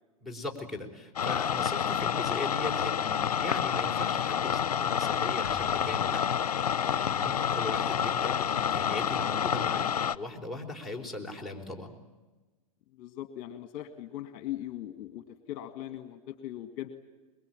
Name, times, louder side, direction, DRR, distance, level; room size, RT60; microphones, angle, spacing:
voice 1, 0.2-6.2 6.5-12.0, left 2 dB, ahead, 5 dB, 4.2 m, -39 dB
sound 1, 1.2-10.2, left 8 dB, 75° left, 0.7 m, -28 dB
sound 2, 5.4-6.9, left 5 dB, 20° left, 5.7 m, -45 dB
voice 2, 13.0-16.9, left 13 dB, 45° left, 10 dB, 1.8 m, -40 dB
23.5 x 22.5 x 9.0 m, 1.2 s
hypercardioid pair, 105°, 19 cm